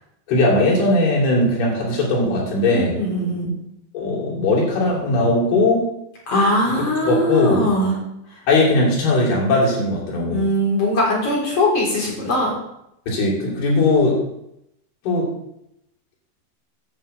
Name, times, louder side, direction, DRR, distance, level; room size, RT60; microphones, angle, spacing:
voice 1, 0.3-3.0 3.9-5.8 6.7-7.7 8.5-10.4 13.1-14.2 15.0-15.3, left 2 dB, 85° left, -3 dB, 5.1 m, -19 dB
voice 2, 2.7-3.5 6.3-8.0 10.3-12.6, left 1 dB, 40° left, -3 dB, 4.7 m, -20 dB
9.4 x 6.1 x 7.9 m, 0.80 s
omnidirectional pair, 4.4 m